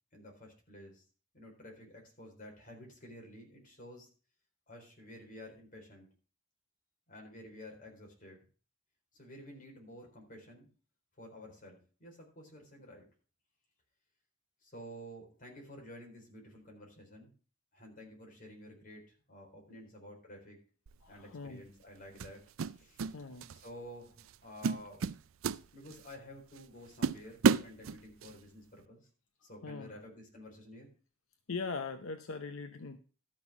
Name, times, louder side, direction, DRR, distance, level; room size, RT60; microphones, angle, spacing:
voice 1, 0.1-1.0 1.3-4.1 4.7-6.1 7.1-8.4 9.1-10.7 11.2-13.1 14.6-17.3 17.7-20.6 21.1-22.4 22.7-23.1 23.5-25.1 25.7-29.1 29.4-30.9, equal, 40° left, 1 dB, 4.1 m, -51 dB
sound 1, 20.9-21.1 22.2-23.1 23.4-23.7 24.2-24.3 24.6-26.1 26.6-26.7 27.0-28.3, right 5 dB, 70° right, 0.4 m, -31 dB
voice 2, 21.0-21.6 23.1-23.5 29.6-29.9 31.5-33.0, left 4 dB, 70° left, 9 dB, 0.7 m, -40 dB
12.5 x 6.0 x 5.8 m, 0.37 s
head